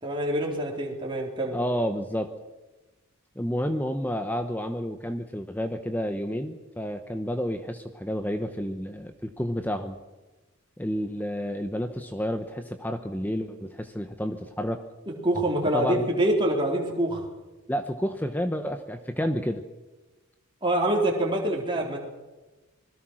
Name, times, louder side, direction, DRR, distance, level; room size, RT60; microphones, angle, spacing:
voice 1, 0.0-1.6 15.2-17.2 20.6-22.0, right 1 dB, 20° right, -1 dB, 3.9 m, -25 dB
voice 2, 1.5-2.3 3.4-10.0 10.8-14.8 15.6-16.1 17.7-19.6, equal, 10° left, 7 dB, 1.0 m, -30 dB
26.0 x 20.5 x 6.3 m, 1.1 s
head